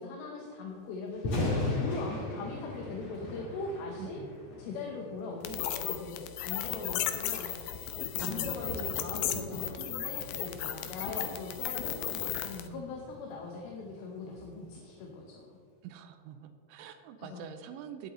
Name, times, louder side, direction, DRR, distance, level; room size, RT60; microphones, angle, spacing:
voice 1, 0.0-1.4 1.7-4.2 4.6-7.5 8.2-12.0 12.4-15.6 17.2-17.4, left 3 dB, 75° left, -1 dB, 2.8 m, -40 dB
Thunder, 1.1-15.2, left 2 dB, 45° left, 2.6 m, -40 dB
voice 2, 4.0-4.3 8.2-9.6 15.8-18.1, right 9 dB, 90° right, 8 dB, 2.0 m, -45 dB
sound 1, 5.4-12.7, left 11 dB, 90° left, 1.9 m, -35 dB
19.0 x 7.8 x 3.1 m, 2.2 s
omnidirectional pair, 4.8 m